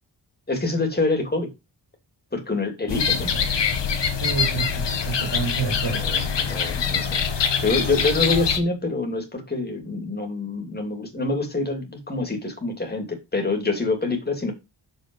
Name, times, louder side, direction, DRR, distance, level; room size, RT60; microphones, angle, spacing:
voice 1, 0.5-1.5 2.3-3.3 5.9-14.5, left 3 dB, 20° left, 2.7 m, -26 dB
sound 1, 2.9-8.6, left 6 dB, 80° left, 1.5 m, -24 dB
voice 2, 4.2-6.1, right 6 dB, 60° right, 3.1 m, -29 dB
6.9 x 5.7 x 5.4 m
wide cardioid pair, 150°, 43 cm